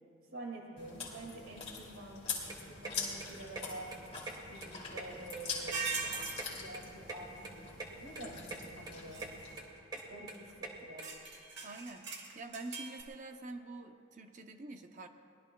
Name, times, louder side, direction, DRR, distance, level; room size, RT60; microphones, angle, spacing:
voice 1, 0.3-3.9 4.5-5.9 6.5-7.6 8.0-9.2 9.9-11.1, right 2 dB, 85° right, -1 dB, 2.1 m, -48 dB
Chewing mastication, 0.8-9.6, left 4 dB, 30° left, 2.6 m, -44 dB
sound 1, 2.2-11.0, right 3 dB, 20° right, 1.4 m, -46 dB
sound 2, 5.7-6.4 9.1-9.4 10.0-10.1 10.3-10.5 11.0-13.0, right 4 dB, 55° right, 1.7 m, -39 dB
voice 2, 11.6-15.1, right 2 dB, 35° right, 6 dB, 0.6 m, -46 dB
23.0 x 19.5 x 2.3 m, 2.6 s
head